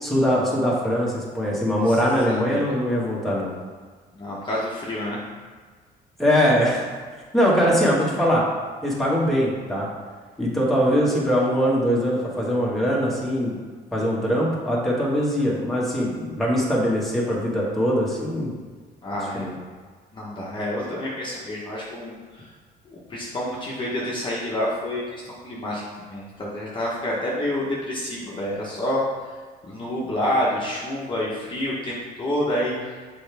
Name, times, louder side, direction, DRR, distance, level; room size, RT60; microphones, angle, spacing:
voice 1, 0.0-3.5 6.2-7.0 7.3-8.4 8.8-9.9 10.4-13.6 13.9-18.5 19.3-19.6, equal, ahead, -6 dB, 1.7 m, -22 dB
voice 2, 2.3-2.7 4.2-5.2 19.0-19.5 20.1-22.4 22.9-25.0 25.4-29.0 29.7-32.8, left 1 dB, 30° left, -6 dB, 1.3 m, -28 dB
6.9 x 4.7 x 3.5 m, 1.5 s
cardioid pair, 110°, 17 cm